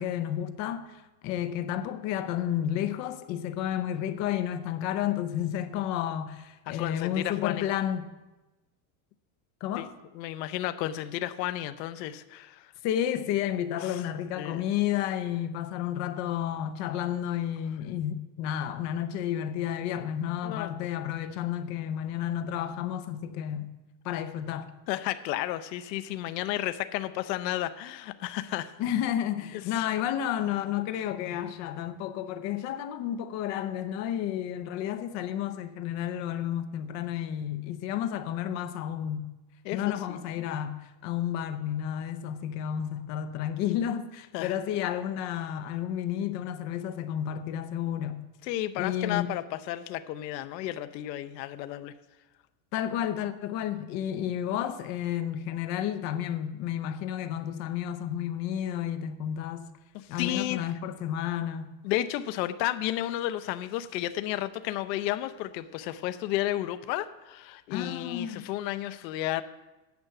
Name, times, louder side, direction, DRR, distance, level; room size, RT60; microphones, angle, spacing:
voice 1, 0.0-8.1 9.6-9.9 12.8-23.7 24.0-24.7 28.8-39.3 39.7-48.2 48.8-49.3 52.7-59.6 60.1-61.7 67.7-68.5, left 10 dB, 35° left, 0.6 m, -31 dB
voice 2, 6.7-7.6 9.8-9.9 10.1-12.7 13.8-14.0 14.4-14.6 20.4-20.7 24.9-28.8 29.5-29.6 39.6-40.2 44.3-44.5 48.4-51.9 59.9-60.7 61.8-69.4, left 14 dB, 85° left, 0.7 m, -32 dB
9.5 x 5.8 x 7.7 m
supercardioid pair, 170°, 49 cm